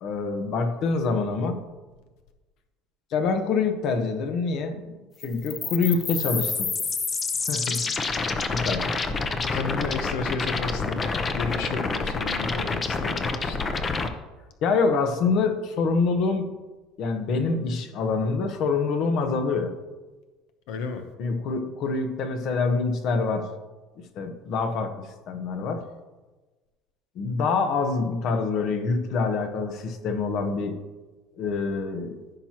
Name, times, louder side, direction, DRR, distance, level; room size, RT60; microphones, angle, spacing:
voice 1, 0.0-1.6 3.1-5.0 5.2-6.7 7.4-7.9 8.5-9.1 14.6-16.5 17.0-19.7 21.2-23.5 24.2-25.8 27.1-30.8 31.4-32.2, left 4 dB, 55° left, 7 dB, 1.1 m, -26 dB
sound 1, 5.2-14.1, left 4 dB, 25° left, 0.7 m, -28 dB
voice 2, 9.4-11.1 11.3-13.6 20.7-21.1, left 5 dB, 80° left, 6 dB, 1.0 m, -32 dB
15.0 x 5.9 x 3.0 m, 1.2 s
cardioid pair, 130°, 0 cm